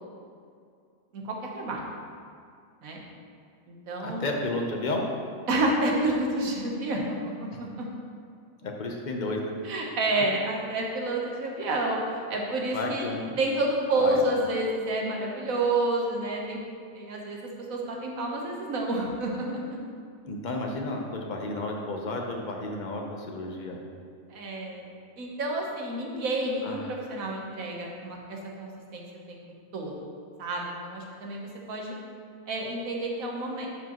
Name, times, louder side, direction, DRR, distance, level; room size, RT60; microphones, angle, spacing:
voice 1, 1.1-1.9 2.8-3.0 3.7-4.3 5.5-7.9 9.6-13.1 13.4-16.6 16.9-17.4 17.7-19.8 24.3-24.9 25.2-29.4 29.7-29.9 30.4-31.9 32.5-33.7, right 2 dB, 85° right, -1 dB, 1.5 m, -29 dB
voice 2, 4.0-5.0 8.6-9.5 12.7-13.4 14.0-14.2 20.3-23.8 26.6-26.9, left 2 dB, 40° left, 1 dB, 0.8 m, -32 dB
11.0 x 4.8 x 3.0 m, 2.3 s
omnidirectional pair, 1.4 m